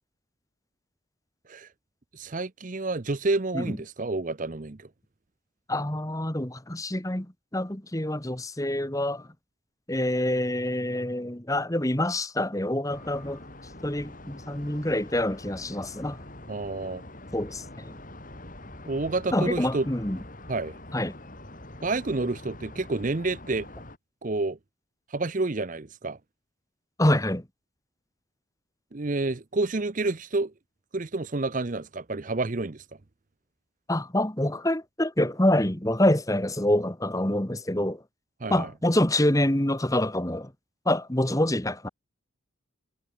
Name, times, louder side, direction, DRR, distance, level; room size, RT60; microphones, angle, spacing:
voice 1, 2.1-4.9 16.5-17.0 18.8-19.9 20.5-20.8 21.8-23.7 24.2-24.6 25.1-26.2 28.9-30.5 30.9-32.8 38.4-38.7, right 3 dB, 40° right, 0.7 m, -29 dB
voice 2, 5.7-9.3 9.9-13.4 13.8-16.2 17.3-18.0 19.3-20.2 20.9-21.2 27.0-27.5 33.9-38.0 38.5-40.5 40.8-41.9, left 1 dB, 15° left, 1.6 m, -26 dB
sound 1, 12.9-24.0, left 1 dB, 40° left, 3.9 m, -44 dB
head